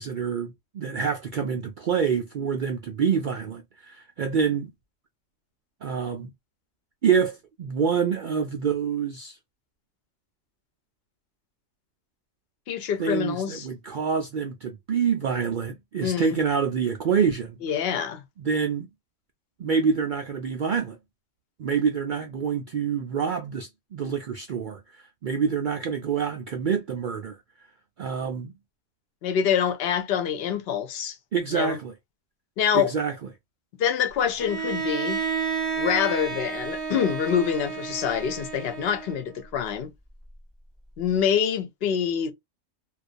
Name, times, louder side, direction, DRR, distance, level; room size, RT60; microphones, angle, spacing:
voice 1, 0.0-4.7 5.8-6.3 7.0-9.4 13.0-17.6 18.4-18.9 19.6-21.0 21.6-27.7 28.0-28.5 31.3-31.9 32.7-33.1, right 6 dB, 70° right, 0.4 m, -27 dB
voice 2, 12.7-13.7 16.0-16.4 17.6-18.2 29.2-31.2 31.5-31.8 32.6-32.9 33.8-35.2 35.8-39.9 41.0-42.3, left 8 dB, 60° left, 0.7 m, -26 dB
Bowed string instrument, 34.4-39.4, right 5 dB, ahead, 0.9 m, -31 dB
2.4 x 2.2 x 2.4 m
omnidirectional pair, 1.4 m